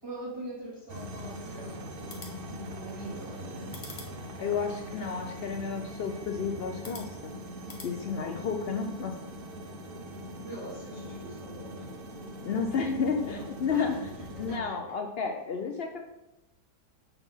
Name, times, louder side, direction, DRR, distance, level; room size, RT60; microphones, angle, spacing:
voice 1, 0.0-1.9 2.5-3.7 10.4-11.9 13.2-14.1 14.3-15.0, right 1 dB, 15° right, -7 dB, 2.9 m, -43 dB
sound 1, 0.9-14.6, equal, 50° right, 0.7 m, -42 dB
sound 2, 1.9-7.9, left 3 dB, 40° left, 1.3 m, -51 dB
voice 2, 4.4-7.3 7.8-9.2 12.4-14.0 14.4-16.0, left 5 dB, 80° left, 4 dB, 0.5 m, -31 dB
6.8 x 4.8 x 5.6 m, 0.93 s
omnidirectional pair, 1.8 m